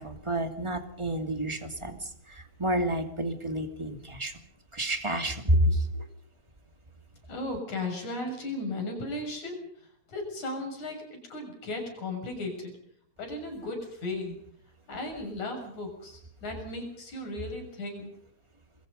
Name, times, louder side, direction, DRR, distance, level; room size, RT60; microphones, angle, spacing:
voice 1, 0.0-4.3 4.7-6.1, right 1 dB, 10° right, 6 dB, 2.3 m, -29 dB
voice 2, 7.3-9.6 10.1-12.7 13.2-14.4 14.9-18.1, left 2 dB, 75° left, 3 dB, 8.2 m, -36 dB
27.5 x 22.5 x 5.5 m, 0.64 s
omnidirectional pair, 3.4 m